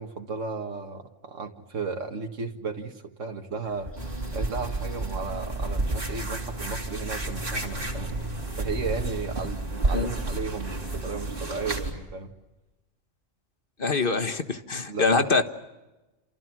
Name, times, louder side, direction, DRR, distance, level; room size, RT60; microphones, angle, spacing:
voice 1, 0.0-3.9 4.3-8.2 8.6-12.3 14.9-15.3, right 4 dB, 85° right, 3 dB, 2.1 m, -34 dB
sound 1, 3.6-8.8, left 1 dB, 10° left, 7.6 m, -47 dB
sound 2, 4.0-11.9, right 2 dB, 45° right, 3.9 m, -31 dB
voice 2, 13.8-15.4, left 3 dB, 45° left, 8 dB, 1.7 m, -24 dB
29.0 x 28.0 x 6.2 m, 1.0 s
omnidirectional pair, 1.3 m